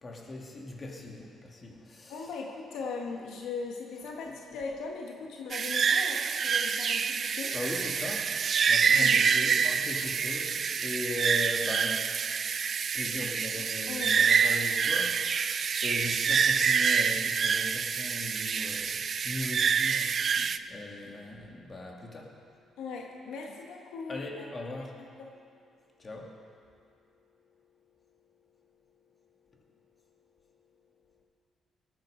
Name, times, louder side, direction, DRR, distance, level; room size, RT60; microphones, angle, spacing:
voice 1, 0.0-2.3 4.2-4.3 7.5-8.4 8.7-12.0 12.9-22.3 24.1-25.0 26.0-26.3, left 2 dB, 35° left, -1 dB, 2.4 m, -39 dB
voice 2, 2.1-7.5 8.9-9.3 13.9-14.1 22.8-24.5 24.8-24.9 25.2-25.3, left 4 dB, 85° left, 0 dB, 1.4 m, -39 dB
sound 1, 5.5-20.6, right 6 dB, 50° right, 0.4 m, -27 dB
18.5 x 9.1 x 5.0 m, 2.3 s
cardioid pair, 90°, 0 cm